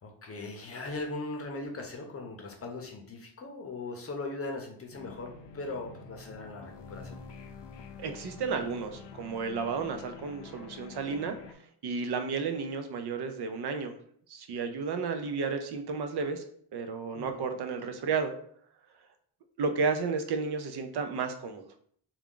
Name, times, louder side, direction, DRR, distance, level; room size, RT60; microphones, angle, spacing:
voice 1, 0.0-7.2 17.1-17.4, left 2 dB, 35° left, 2 dB, 0.7 m, -39 dB
sound 1, 4.9-11.5, left 6 dB, 90° left, 0.5 m, -47 dB
voice 2, 8.0-11.4 11.8-13.9 14.3-16.4 16.7-18.3 19.6-21.7, right 5 dB, 65° right, 7 dB, 0.5 m, -32 dB
3.5 x 2.3 x 3.7 m, 0.62 s
wide cardioid pair, 135°, 42 cm